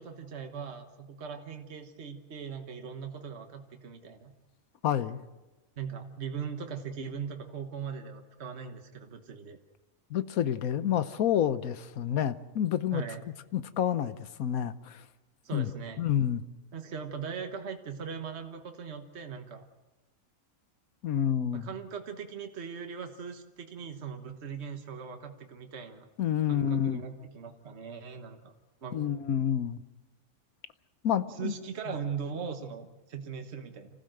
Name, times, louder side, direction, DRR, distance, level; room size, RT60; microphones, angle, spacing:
voice 1, 0.0-4.3 5.8-9.6 12.9-13.2 15.4-16.0 16.7-19.7 21.5-26.1 26.5-28.5 28.8-29.0 31.4-33.9, right 6 dB, 50° right, 5 dB, 1.5 m, -40 dB
voice 2, 4.8-5.2 10.1-13.0 13.5-15.1 15.5-15.7 16.0-16.4 21.0-21.7 26.2-27.0 28.9-29.8 31.0-31.5, left 9 dB, 85° left, 14 dB, 1.3 m, -29 dB
26.0 x 15.5 x 7.7 m, 1.1 s
omnidirectional pair, 1.5 m